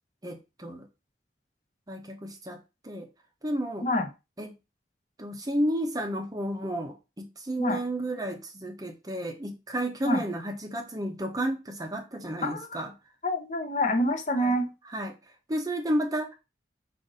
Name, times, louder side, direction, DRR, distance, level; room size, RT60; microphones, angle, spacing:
voice 1, 0.2-0.9 1.9-2.6 2.8-3.1 3.4-3.9 4.4-4.5 5.2-12.9 14.3-14.5 14.9-15.2 15.5-16.3, right 1 dB, 20° right, 0.6 m, -32 dB
voice 2, 13.2-14.7, left 1 dB, 40° left, 0.6 m, -27 dB
5.0 x 2.5 x 3.9 m
head